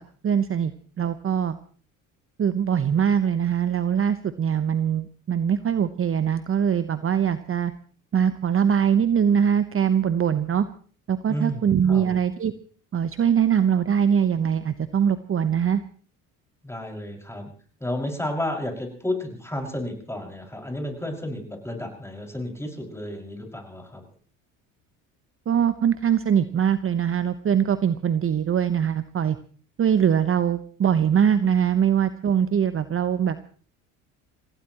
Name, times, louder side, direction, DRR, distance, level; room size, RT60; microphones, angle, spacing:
voice 1, 0.2-0.7 1.0-1.6 2.4-7.7 8.1-10.6 11.1-12.5 12.9-15.8 25.5-29.4 29.8-33.4, right 8 dB, 30° right, 12 dB, 1.0 m, -22 dB
voice 2, 11.3-12.1 16.6-17.5 17.8-24.0, left 1 dB, 5° left, 2 dB, 5.9 m, -32 dB
28.5 x 16.5 x 3.0 m, 0.42 s
hypercardioid pair, 65°, 41 cm